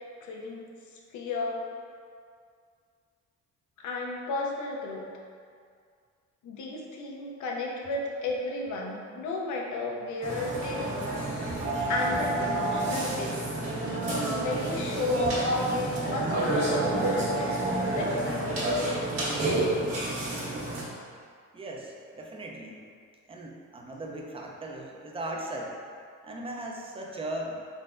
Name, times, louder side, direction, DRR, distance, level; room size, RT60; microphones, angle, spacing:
voice 1, 0.2-0.7 1.1-1.6 3.8-5.1 6.4-11.1 11.5-11.6 11.9-13.3 14.1-18.9, left 2 dB, 75° left, -1 dB, 0.6 m, -33 dB
Burping eructation, 10.2-20.8, right 1 dB, 50° right, 1.4 m, -29 dB
voice 2, 21.5-22.8 23.3-25.8 26.2-27.6, right 1 dB, 20° right, 0 dB, 0.5 m, -38 dB
3.8 x 3.2 x 2.5 m, 2.2 s
cardioid pair, 90°, 30 cm